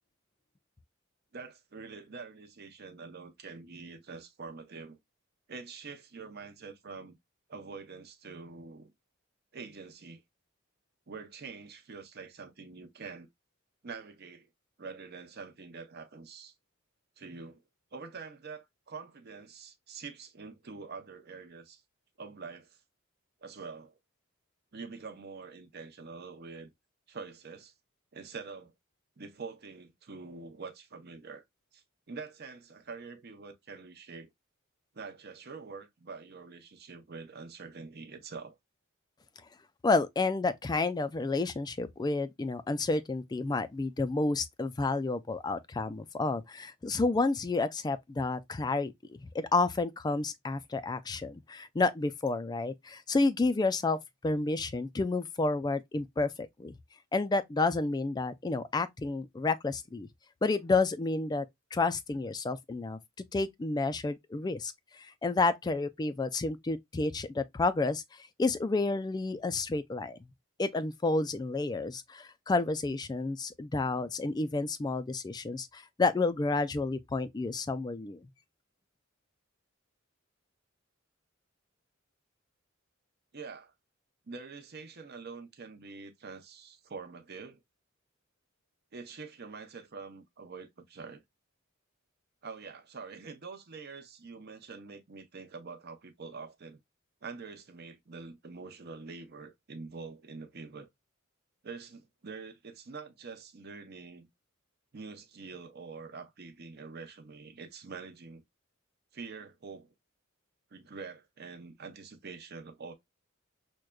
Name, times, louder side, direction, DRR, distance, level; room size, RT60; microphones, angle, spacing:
voice 1, 1.3-5.0 5.5-7.2 7.5-8.9 9.5-10.2 11.1-13.3 13.8-14.5 14.8-16.5 17.2-17.6 17.9-21.8 22.2-22.8 23.4-23.9 24.7-26.7 27.1-27.7 28.1-28.7 29.2-31.4 31.7-34.3 34.9-38.6 83.3-83.7 84.3-87.6 88.9-91.2 92.4-96.8 97.2-100.9 101.6-104.3 104.9-108.4 109.1-109.9 110.7-112.9, right 4 dB, 50° right, 0.7 m, -45 dB
voice 2, 39.8-54.0 54.2-56.7 57.1-60.1 60.4-61.5 61.7-63.0 63.3-68.0 68.4-70.3 70.6-78.2, left 3 dB, 20° left, 0.3 m, -30 dB
6.2 x 2.2 x 2.2 m
head